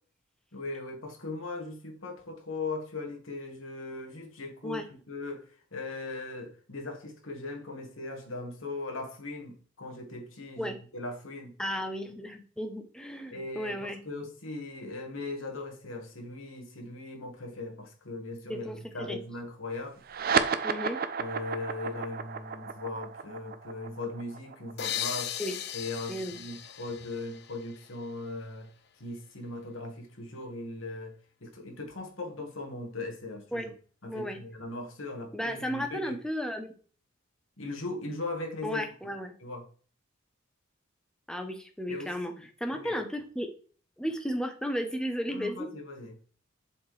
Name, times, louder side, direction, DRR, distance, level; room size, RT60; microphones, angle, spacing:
voice 1, 0.5-11.5 13.3-20.0 21.2-25.3 25.7-28.7 29.0-31.1 31.4-33.7 34.0-36.2 37.6-38.9 39.4-39.7 41.9-42.4 42.7-43.0 45.3-46.2, left 2 dB, 80° left, 1.6 m, -39 dB
voice 2, 11.6-14.0 18.5-19.2 20.6-21.0 25.4-25.5 26.1-26.4 33.5-33.7 34.1-34.4 35.3-36.7 38.6-39.3 41.3-42.3 42.6-43.5 44.0-45.7, equal, 5° left, 0.8 m, -34 dB
sound 1, 20.0-26.9, right 6 dB, 45° right, 0.5 m, -33 dB
sound 2, 24.8-28.3, left 11 dB, 55° left, 0.5 m, -38 dB
7.4 x 4.3 x 3.2 m
head